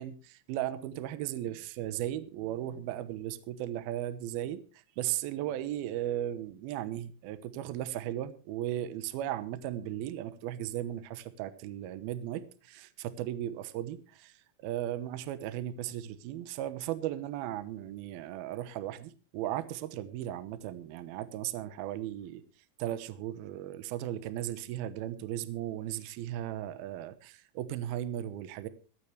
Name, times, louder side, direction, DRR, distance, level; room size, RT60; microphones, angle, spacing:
voice 1, 0.0-22.4 22.8-28.7, right 12 dB, 75° right, 13 dB, 2.4 m, -36 dB
26.5 x 8.9 x 3.3 m, 0.36 s
omnidirectional pair, 5.5 m